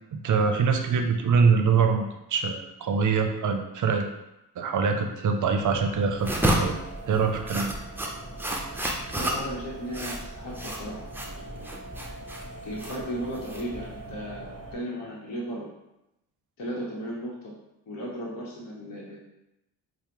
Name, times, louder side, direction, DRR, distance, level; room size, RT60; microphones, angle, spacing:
voice 1, 0.1-2.0 2.3-4.1 4.6-6.8 7.1-7.7, right 5 dB, 50° right, 5 dB, 0.6 m, -24 dB
sound 1, 5.6-14.8, right 1 dB, 20° left, 1.1 m, -42 dB
sound 2, 6.2-14.1, right 1 dB, 5° right, 0.5 m, -31 dB
voice 2, 9.1-11.8 12.6-15.7 16.6-17.5 17.9-19.2, equal, 55° left, -5 dB, 1.0 m, -36 dB
4.7 x 2.1 x 2.9 m, 0.90 s
supercardioid pair, 60°, 41 cm